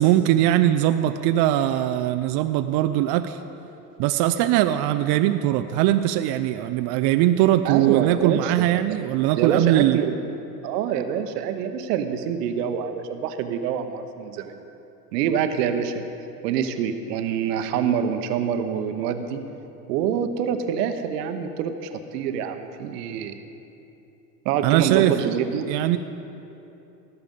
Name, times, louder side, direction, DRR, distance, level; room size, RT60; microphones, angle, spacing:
voice 1, 0.0-3.4 4.0-10.0 24.6-25.1 25.7-26.0, right 13 dB, 50° right, 9 dB, 0.5 m, -21 dB
voice 2, 7.6-9.0 9.4-10.2 10.6-14.5 15.1-16.0 16.4-19.4 19.9-23.4 24.4-25.7, right 8 dB, 75° right, 8 dB, 1.0 m, -26 dB
18.0 x 6.9 x 5.3 m, 2.9 s
hypercardioid pair, 80°, 49 cm